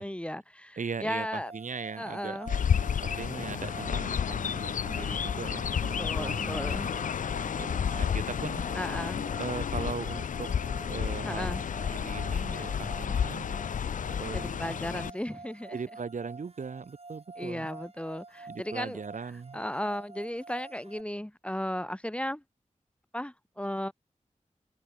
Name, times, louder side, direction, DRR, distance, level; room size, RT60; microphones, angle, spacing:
voice 1, 0.0-1.5 2.0-2.5 6.0-6.9 8.7-9.2 11.2-11.6 14.3-15.8 17.4-19.0 19.5-22.4 23.1-23.9, equal, 10° left, 1.1 m, -35 dB
voice 2, 0.8-2.4 3.0-7.0 7.6-8.6 9.4-10.5 10.9-11.6 11.9-13.5 14.2-14.6 15.7-17.7 18.5-19.6, right 5 dB, 80° right, 1.4 m, -39 dB
sound 1, 1.2-21.0, right 3 dB, 50° right, 7.2 m, -48 dB
Chirp tweet, 2.5-15.1, left 7 dB, 85° left, 0.4 m, -31 dB
wide cardioid pair, 75°, 13 cm